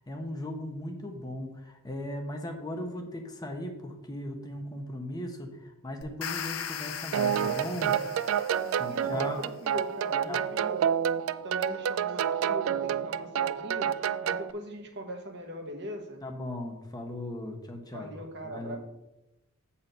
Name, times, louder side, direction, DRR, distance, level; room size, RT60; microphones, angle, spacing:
voice 1, 0.1-7.9 8.8-9.4 10.3-10.4 16.2-18.8, left 1 dB, 20° left, 3 dB, 0.9 m, -37 dB
sound 1, 6.0-9.2, left 8 dB, 90° left, 0.6 m, -39 dB
sound 2, 7.1-14.5, right 8 dB, 70° right, 0.3 m, -29 dB
voice 2, 8.5-10.8 11.4-13.9 14.2-16.2 17.9-18.8, equal, 55° right, 3 dB, 1.3 m, -40 dB
7.7 x 4.3 x 6.6 m, 0.94 s
head